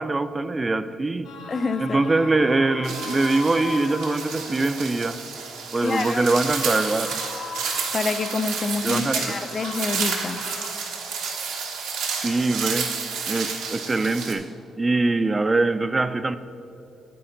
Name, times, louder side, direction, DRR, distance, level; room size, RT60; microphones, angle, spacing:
voice 1, 0.0-1.3 1.8-5.2 5.7-7.2 8.8-9.3 12.2-13.0 13.3-16.4, right 2 dB, 25° right, 0.4 m, -23 dB
sound 1, 1.2-4.9 5.8-8.7 9.2-10.7, left 4 dB, 85° left, 1.0 m, -38 dB
voice 2, 1.5-2.0 5.8-6.2 7.9-10.4, left 4 dB, 35° left, 0.5 m, -27 dB
sound 2, 2.8-14.3, right 5 dB, 90° right, 1.1 m, -30 dB
8.7 x 8.5 x 3.9 m
cardioid pair, 90°, 0 cm